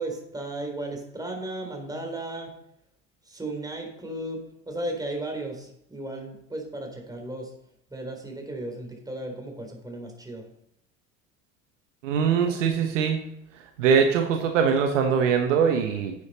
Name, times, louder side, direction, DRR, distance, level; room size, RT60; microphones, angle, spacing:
voice 1, 0.0-2.5 3.3-7.5 7.9-10.4, right 1 dB, 10° right, 2 dB, 3.6 m, -35 dB
voice 2, 12.0-13.2 13.8-16.1, right 6 dB, 70° right, 5 dB, 1.4 m, -22 dB
10.5 x 8.6 x 4.3 m, 0.77 s
hypercardioid pair, 75°, 38 cm